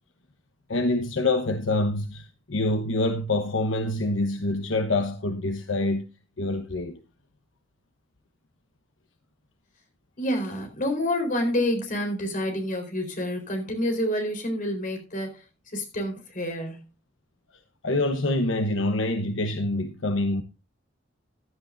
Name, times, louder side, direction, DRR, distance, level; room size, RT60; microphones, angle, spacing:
voice 1, 0.7-6.1 6.4-7.0 17.8-20.4, left 2 dB, 70° left, 1.1 m, -26 dB
voice 2, 10.2-15.4 15.7-16.8, left 1 dB, 45° left, 4.2 m, -28 dB
16.0 x 11.5 x 2.6 m
head